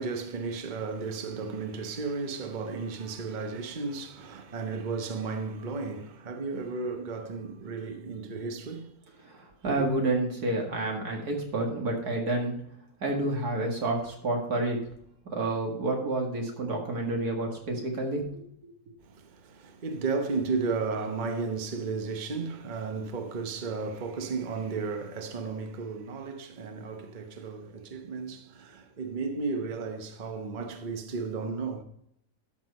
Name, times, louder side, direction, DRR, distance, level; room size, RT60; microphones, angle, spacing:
voice 1, 0.0-8.9 9.7-9.8 19.2-31.8, right 4 dB, 35° right, 1.0 m, -34 dB
voice 2, 9.2-12.5 13.0-14.8 15.3-18.2, right 2 dB, 90° right, 2.5 m, -29 dB
12.5 x 6.0 x 4.2 m
omnidirectional pair, 1.6 m